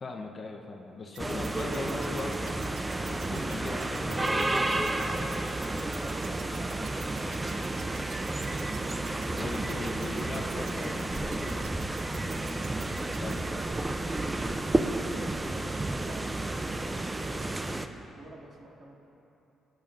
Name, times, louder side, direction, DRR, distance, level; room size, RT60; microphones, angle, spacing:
voice 1, 0.0-5.4 9.3-11.6 13.2-13.5, left 3 dB, 40° left, 2 dB, 0.8 m, -39 dB
sound 1, 1.1-13.3, right 10 dB, 85° right, 0.5 m, -48 dB
sound 2, 1.2-17.9, right 2 dB, 15° right, 0.5 m, -31 dB
voice 2, 6.0-8.1 13.3-17.7 18.1-19.0, right 1 dB, 45° right, -5 dB, 2.3 m, -50 dB
17.0 x 9.1 x 2.5 m, 3.0 s
cardioid pair, 90°, 0 cm